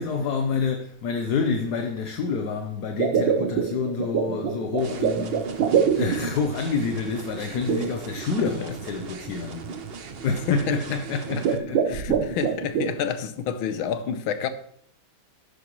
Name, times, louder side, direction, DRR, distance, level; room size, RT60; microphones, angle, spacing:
voice 1, 0.0-9.7 10.2-12.4 13.9-14.0, left 5 dB, 60° left, 1.3 m, -28 dB
sound 1, 2.9-6.5 7.7-8.4 9.0-9.1 9.7-10.0 10.6-10.9 11.3-12.9, right 7 dB, 75° right, 1.7 m, -24 dB
sound 2, 4.8-11.6, right 6 dB, 60° right, 0.6 m, -39 dB
voice 2, 10.5-11.4 11.9-14.5, left 8 dB, 90° left, 1.7 m, -29 dB
12.0 x 9.8 x 3.1 m
omnidirectional pair, 2.2 m